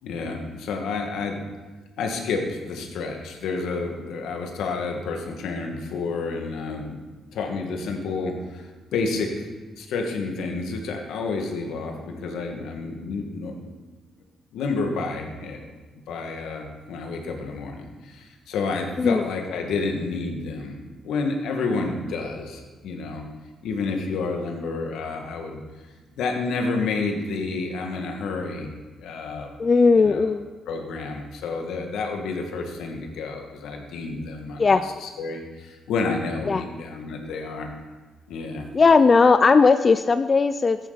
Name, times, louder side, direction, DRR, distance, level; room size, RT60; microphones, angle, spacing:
voice 1, 0.0-1.4 2.0-7.0 7.3-9.5 9.8-13.5 14.5-15.7 16.1-23.2 23.6-25.6 26.2-28.7 29.0-29.5 29.9-30.3 30.7-37.7 38.3-38.7, left 4 dB, 80° left, 2 dB, 1.8 m, -30 dB
voice 2, 29.6-30.4 34.6-34.9 36.5-36.6 38.7-40.8, left 4 dB, 35° left, 11 dB, 0.4 m, -17 dB
14.0 x 10.0 x 4.1 m, 1.3 s
cardioid pair, 90°, 0 cm